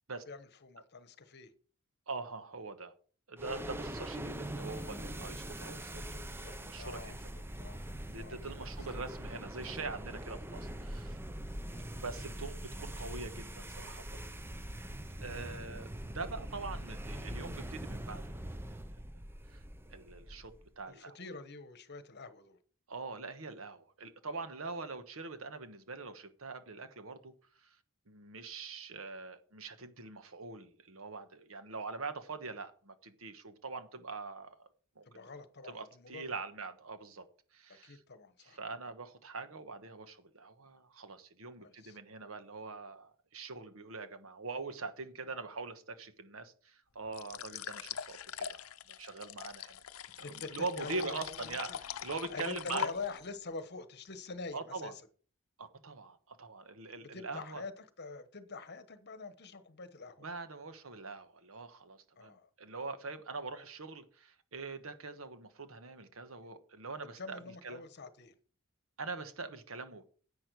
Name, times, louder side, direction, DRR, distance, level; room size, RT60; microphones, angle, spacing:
voice 1, 0.3-1.5 6.4-7.9 8.2-8.7 15.4-15.6 20.9-22.6 35.0-36.4 37.8-38.6 41.6-42.0 50.2-51.8 52.3-55.0 57.1-60.3 62.2-62.5 67.2-68.3, left 3 dB, 55° left, 1.2 m, -46 dB
voice 2, 2.1-2.9 3.3-7.2 8.1-11.2 11.9-14.2 15.2-15.9 16.1-18.8 19.5-19.6 19.9-21.2 22.9-27.3 27.6-27.8 28.1-34.7 35.0-35.3 35.6-37.3 37.5-38.0 38.4-48.7 49.0-49.8 50.3-52.9 54.5-54.9 55.6-57.6 60.2-67.8 69.0-70.0, right 3 dB, 75° right, 1.3 m, -43 dB
sound 1, 3.4-20.7, right 1 dB, 10° right, 0.6 m, -43 dB
sound 2, 47.1-53.3, left 8 dB, 85° left, 0.6 m, -42 dB
10.5 x 8.7 x 4.8 m
head